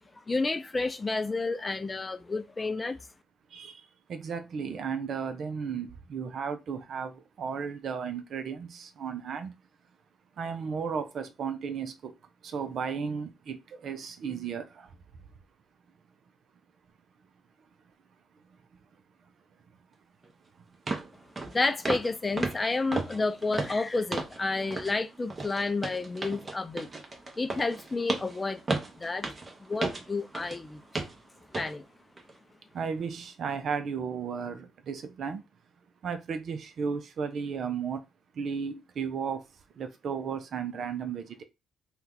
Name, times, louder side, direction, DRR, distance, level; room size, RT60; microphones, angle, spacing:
voice 1, 0.3-3.0 21.5-26.9 27.4-28.6 29.0-29.3 29.6-30.8 31.6-31.9, left 3 dB, 30° left, 0.5 m, -30 dB
voice 2, 3.5-9.6 10.4-12.1 12.4-15.0 32.7-35.4 36.0-38.0 38.3-39.5 39.7-41.4, right 6 dB, 60° right, 0.5 m, -34 dB
sound 1, 20.2-20.3 20.9-21.1 21.4-21.6 21.8-22.1 22.4-24.4 24.7-25.0 25.3-30.6 30.9-31.2 31.5-31.7 32.2-32.3, right 3 dB, 35° right, 0.9 m, -34 dB
2.7 x 2.3 x 3.7 m
hypercardioid pair, 50°, 0 cm